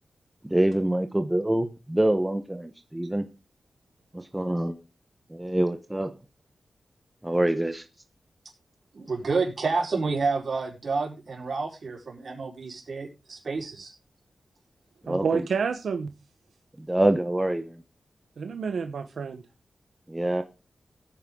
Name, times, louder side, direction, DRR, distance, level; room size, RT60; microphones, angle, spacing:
voice 1, 0.4-3.2 4.1-4.8 5.3-6.1 7.2-7.8 15.0-15.4 16.8-17.8 20.1-20.4, right 1 dB, 10° right, 7 dB, 1.1 m, -25 dB
voice 2, 8.9-13.9, right 4 dB, 55° right, 0 dB, 4.6 m, -29 dB
voice 3, 15.1-16.1 18.4-19.4, right 5 dB, 90° right, 7 dB, 1.0 m, -29 dB
16.0 x 9.5 x 3.8 m, 0.28 s
wide cardioid pair, 120°, 0 cm